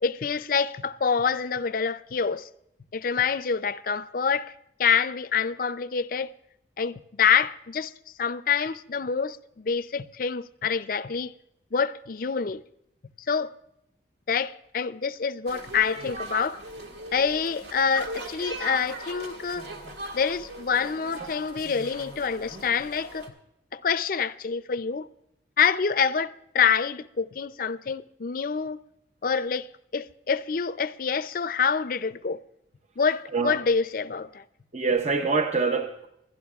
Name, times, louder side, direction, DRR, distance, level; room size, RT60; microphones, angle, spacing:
voice 1, 0.0-2.5 2.9-4.5 4.8-6.3 6.8-7.9 8.2-11.3 11.7-12.6 13.3-13.5 14.3-16.6 17.1-19.7 20.1-23.3 23.7-25.1 25.6-28.8 29.2-32.4 33.0-34.4, left 6 dB, 50° left, 0.5 m, -26 dB
sound 1, 15.5-23.3, right 2 dB, 70° right, 1.8 m, -39 dB
voice 2, 33.3-33.6 34.7-36.1, right 4 dB, 40° right, 0.7 m, -25 dB
22.5 x 11.5 x 2.4 m
head